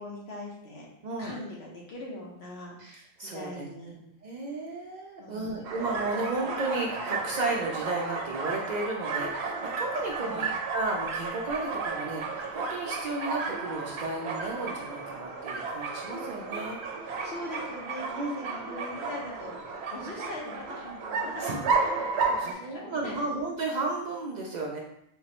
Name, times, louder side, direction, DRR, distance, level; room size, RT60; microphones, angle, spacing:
voice 1, 0.0-0.9 1.2-2.9 3.2-3.9 5.2-5.6 10.2-10.4 17.0-23.2, left 1 dB, 80° left, -3 dB, 1.2 m, -41 dB
voice 2, 1.0-1.3 2.8-3.7 4.2-16.8 18.1-18.4 21.4-22.0 22.2-24.8, right 2 dB, 55° right, -1 dB, 0.5 m, -33 dB
sound 1, 5.6-22.5, right 4 dB, 85° right, 0.8 m, -33 dB
3.5 x 3.0 x 2.9 m, 0.76 s
omnidirectional pair, 1.1 m